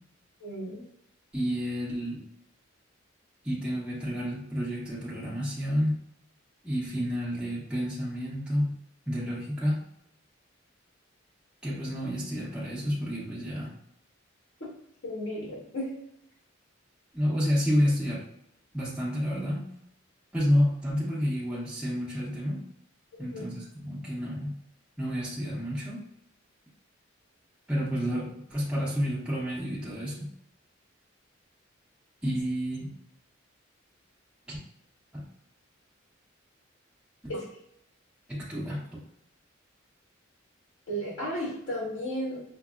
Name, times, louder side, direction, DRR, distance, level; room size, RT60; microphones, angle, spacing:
voice 1, 0.4-0.8 15.0-15.9 23.2-23.4 37.3-37.5 40.9-42.4, equal, 85° left, -6 dB, 1.3 m, -34 dB
voice 2, 1.3-2.2 3.4-5.9 6.6-8.7 9.1-9.8 11.6-13.7 17.1-18.2 18.7-19.7 20.3-22.6 23.2-24.5 25.0-26.0 27.7-30.3 32.2-32.9 34.5-34.6 35.1-35.2 37.2-37.4 38.3-39.0, equal, 5° right, -7 dB, 0.8 m, -30 dB
5.8 x 2.0 x 2.3 m, 0.77 s
head